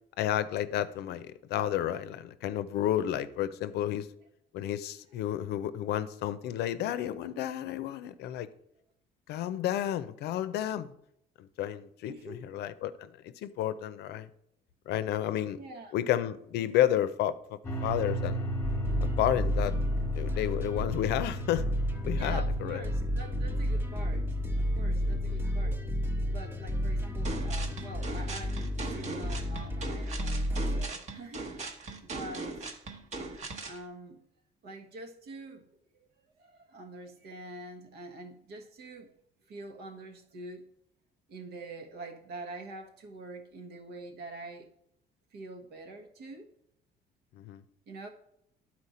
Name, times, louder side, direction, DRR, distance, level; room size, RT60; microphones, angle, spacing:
voice 1, 0.2-4.1 4.5-8.5 9.3-10.9 11.4-14.3 14.9-15.6 15.9-18.5 19.0-19.8 20.1-21.7 22.0-22.8 25.0-25.5 47.3-47.6, left 11 dB, 75° left, 0.5 m, -31 dB
voice 2, 12.1-12.4 15.6-16.0 22.1-24.3 24.6-25.8 26.3-31.5 32.0-32.5 33.6-34.2 34.6-35.7 35.9-39.1 39.5-40.6 41.3-44.7 45.3-46.5 47.9-48.1, right 2 dB, 75° right, 1.3 m, -45 dB
sound 1, 17.6-30.0, left 1 dB, 20° left, 1.2 m, -37 dB
sound 2, 18.6-30.8, equal, 15° right, 0.8 m, -32 dB
sound 3, 27.2-33.8, right 3 dB, 45° right, 1.0 m, -39 dB
10.5 x 4.3 x 4.2 m
cardioid pair, 110°, 17 cm